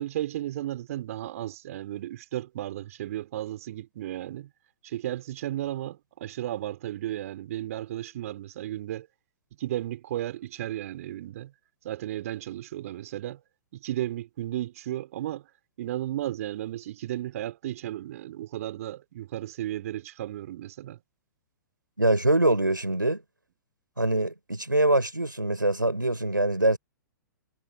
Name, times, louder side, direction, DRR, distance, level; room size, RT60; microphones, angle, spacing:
voice 1, 0.0-4.5 4.8-9.1 9.6-11.5 11.8-13.4 13.7-15.5 15.8-21.0, right 13 dB, 50° right, 3.9 m, -34 dB
voice 2, 22.0-23.2 24.0-26.8, right 1 dB, 85° right, 3.9 m, -24 dB
figure-of-eight pair, 110°, 10 cm